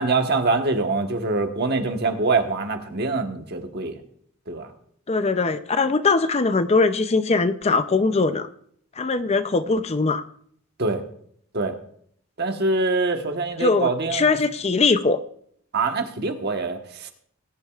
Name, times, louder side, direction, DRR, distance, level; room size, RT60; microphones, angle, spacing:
voice 1, 0.0-4.0 4.5-4.7 10.8-11.0 11.5-11.7 12.4-14.4 15.7-17.1, right 3 dB, 50° right, 5 dB, 1.3 m, -24 dB
voice 2, 5.1-8.5 9.0-10.3 13.6-15.2, left 3 dB, 30° left, 11 dB, 0.5 m, -21 dB
19.5 x 10.5 x 2.4 m, 0.63 s
head